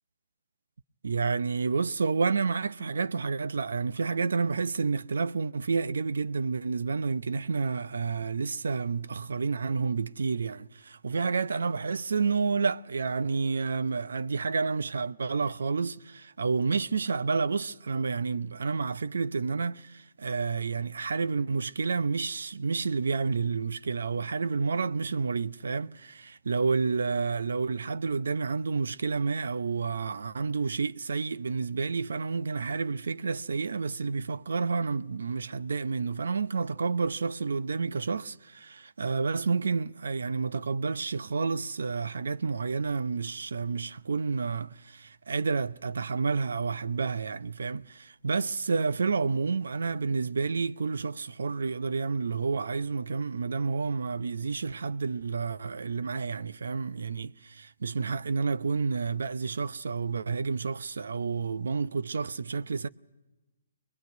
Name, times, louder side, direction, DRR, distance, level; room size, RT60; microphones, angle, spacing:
voice 1, 1.0-62.9, right 4 dB, 80° right, 0.8 m, -30 dB
24.0 x 21.5 x 9.4 m
hypercardioid pair, 150°, 0 cm